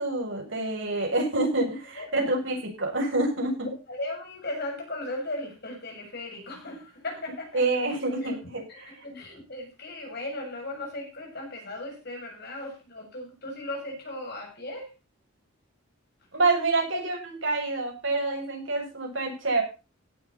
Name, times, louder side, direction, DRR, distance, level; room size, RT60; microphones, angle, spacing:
voice 1, 0.0-3.7 7.5-9.0 16.3-19.6, right 2 dB, 60° right, 1 dB, 7.6 m, -27 dB
voice 2, 3.9-7.6 8.0-8.3 8.7-14.9, left 2 dB, 50° left, 1 dB, 7.6 m, -37 dB
17.0 x 12.5 x 4.2 m, 0.33 s
head